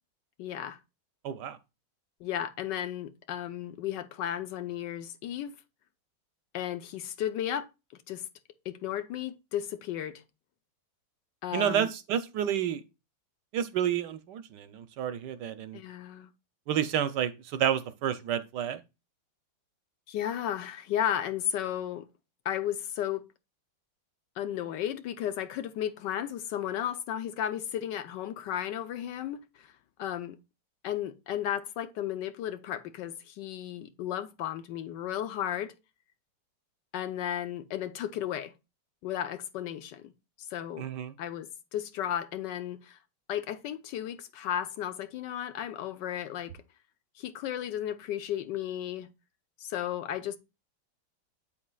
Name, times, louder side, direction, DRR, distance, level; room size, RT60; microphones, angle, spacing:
voice 1, 0.4-0.8 2.2-5.5 6.5-7.7 8.1-8.2 8.7-10.2 11.4-11.9 15.7-16.3 20.1-22.1 22.4-23.2 24.4-29.7 30.0-30.4 30.8-35.7 36.9-38.5 39.0-40.1 40.4-40.9 41.2-43.0 43.3-46.5 47.2-49.1 49.6-50.4, left 10 dB, 75° left, 1.2 m, -34 dB
voice 2, 1.2-1.6 11.5-12.8 13.5-15.8 16.7-18.8 40.8-41.1, right 9 dB, 70° right, 1.1 m, -30 dB
8.4 x 7.3 x 2.3 m
omnidirectional pair, 2.1 m